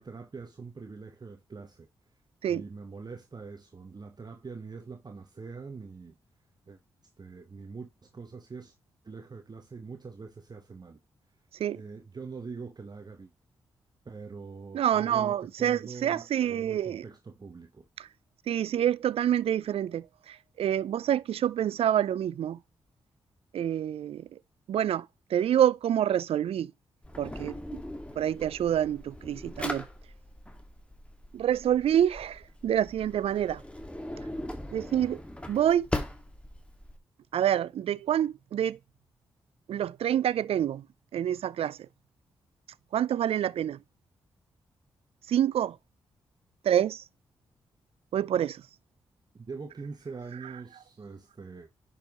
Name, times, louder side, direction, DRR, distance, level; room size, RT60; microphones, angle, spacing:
voice 1, 0.0-1.9 2.5-6.2 6.7-6.8 7.2-8.7 9.0-11.0 11.7-13.3 14.0-17.9 49.3-51.7, right 4 dB, 40° right, 1.1 m, -43 dB
voice 2, 14.7-17.0 18.5-22.6 23.5-24.3 24.7-25.1 25.3-26.7 27.2-27.8 28.2-29.9 31.3-33.6 34.7-35.2 35.5-35.9 37.3-38.8 39.7-40.8 41.1-41.8 42.9-43.8 45.3-45.8 46.6-47.0 48.1-48.6, right 10 dB, 65° right, 0.4 m, -27 dB
Drawer open or close, 27.0-37.0, left 1 dB, 10° left, 1.9 m, -40 dB
10.5 x 5.6 x 3.0 m
hypercardioid pair, 40°, 11 cm